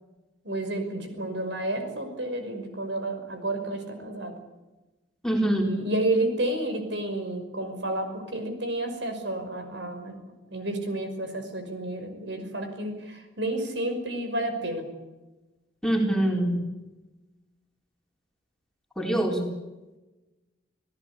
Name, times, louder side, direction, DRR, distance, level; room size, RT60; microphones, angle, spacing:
voice 1, 0.4-4.3 5.6-10.2 10.5-14.9, right 1 dB, 70° right, 6 dB, 5.6 m, -30 dB
voice 2, 5.2-5.8 15.8-16.7 19.0-19.5, right 1 dB, 5° left, 0 dB, 4.4 m, -24 dB
29.0 x 17.5 x 8.5 m, 1.1 s
head